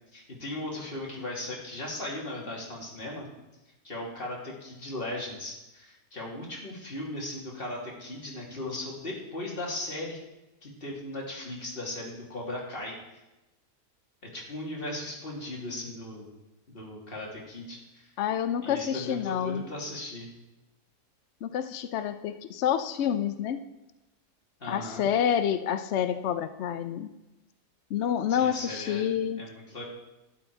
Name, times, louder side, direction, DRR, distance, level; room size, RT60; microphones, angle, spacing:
voice 1, 0.1-3.3 3.8-10.2 10.6-12.9 14.3-16.3 16.7-18.1 18.6-20.3 24.6-25.1 28.3-29.1 29.4-29.8, left 1 dB, 35° left, -3 dB, 2.6 m, -37 dB
voice 2, 18.2-19.6 21.4-23.6 24.7-27.1 27.9-29.4, left 9 dB, 75° left, 10 dB, 0.6 m, -28 dB
12.0 x 9.7 x 4.5 m, 1.0 s
omnidirectional pair, 1.8 m